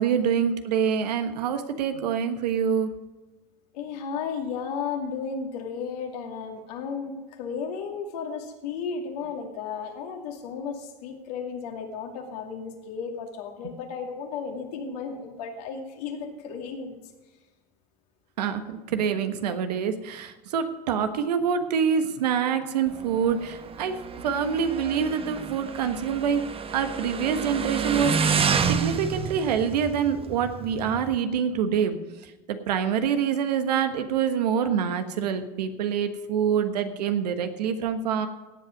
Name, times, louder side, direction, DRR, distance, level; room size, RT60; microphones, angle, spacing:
voice 1, 0.0-2.9 13.6-13.7 18.4-26.4 26.7-32.0 32.2-38.3, right 7 dB, 85° right, 8 dB, 1.4 m, -26 dB
voice 2, 3.7-17.0, left 6 dB, 75° left, 2 dB, 2.5 m, -34 dB
Motorcycle, 22.9-31.2, right 6 dB, 30° right, 1.0 m, -29 dB
17.0 x 7.8 x 5.3 m, 1.2 s
hypercardioid pair, 85°, 20 cm